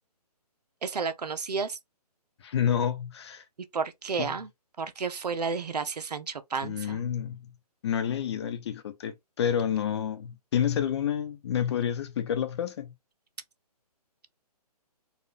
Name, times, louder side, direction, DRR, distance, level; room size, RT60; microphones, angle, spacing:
voice 1, 0.8-1.8 3.7-4.5 4.8-7.0, right 5 dB, 80° right, 0.9 m, -31 dB
voice 2, 2.4-3.4 4.2-4.3 6.6-7.4 7.8-12.9, left 8 dB, 40° left, 1.0 m, -29 dB
4.2 x 2.5 x 4.0 m
hypercardioid pair, 150°, 20 cm